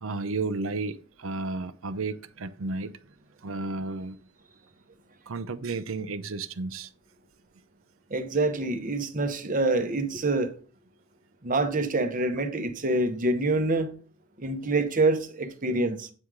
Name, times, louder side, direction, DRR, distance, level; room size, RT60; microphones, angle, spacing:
voice 1, 0.0-2.9 3.4-4.2 5.3-6.9, right 3 dB, 65° right, 0.6 m, -32 dB
voice 2, 8.1-10.5 11.4-13.9 14.4-16.1, right 2 dB, 40° right, 1.0 m, -26 dB
8.7 x 4.7 x 3.7 m
head